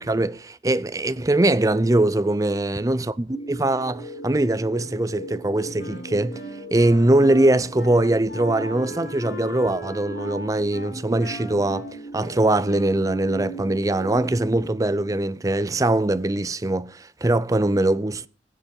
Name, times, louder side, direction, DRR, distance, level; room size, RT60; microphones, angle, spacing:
voice 1, 0.0-6.4 6.7-11.9 12.1-18.3, right 1 dB, 20° right, 0.5 m, -22 dB
sound 1, 3.3-15.2, right 1 dB, 85° left, 2.4 m, -39 dB
Wind instrument woodwind instrument, 5.8-13.2, left 1 dB, 60° left, 4.8 m, -39 dB
17.0 x 8.0 x 5.3 m
head